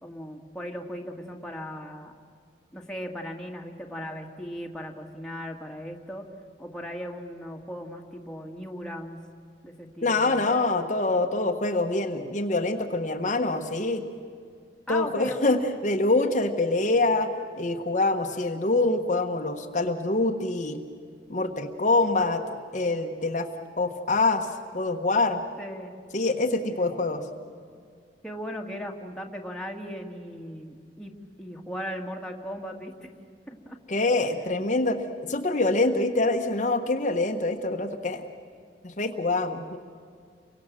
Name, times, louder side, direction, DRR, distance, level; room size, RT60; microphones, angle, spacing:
voice 1, 0.0-2.1 2.7-6.2 6.6-9.2 9.6-10.7 14.9-15.6 25.6-25.9 26.8-26.9 28.2-33.1 33.5-33.8, equal, 5° left, 1 dB, 2.1 m, -37 dB
voice 2, 10.0-14.0 14.9-17.3 17.6-20.8 21.3-23.5 23.8-24.5 24.7-25.4 26.1-27.2 33.9-38.2 38.8-39.8, left 2 dB, 45° left, 4 dB, 1.3 m, -25 dB
29.5 x 24.0 x 7.6 m, 2.2 s
head